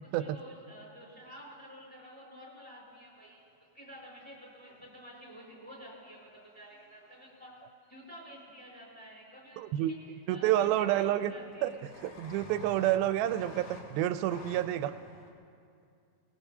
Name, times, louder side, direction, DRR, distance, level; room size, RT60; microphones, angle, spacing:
voice 1, 0.0-3.4 3.7-7.5 7.9-11.8, equal, ahead, -4 dB, 4.6 m, -50 dB
sound 1, 4.8-4.9 6.4-7.1 9.4-9.5 9.7-10.2 10.5-15.3, left 2 dB, 55° left, 2.1 m, -50 dB
voice 2, 9.6-9.9 10.3-11.3 11.6-11.7 12.0-14.9, right 13 dB, 90° right, 11 dB, 2.4 m, -29 dB
22.5 x 20.0 x 2.8 m, 2.4 s
omnidirectional pair, 4.2 m